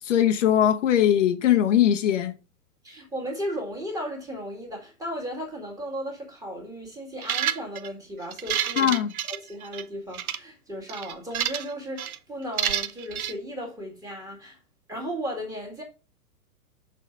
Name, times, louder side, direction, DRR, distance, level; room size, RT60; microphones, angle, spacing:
voice 1, 0.0-2.3 8.8-9.1, left 10 dB, 50° left, 1.0 m, -20 dB
voice 2, 2.8-9.0 9.2-14.6 14.9-15.8, equal, 5° right, 1.9 m, -35 dB
sound 1, 7.2-7.9 8.3-9.8 10.1-10.4 10.9-11.7 12.0-12.2 12.6-13.3, right 10 dB, 70° right, 0.8 m, -29 dB
6.8 x 4.0 x 5.1 m
hypercardioid pair, 135°, 46 cm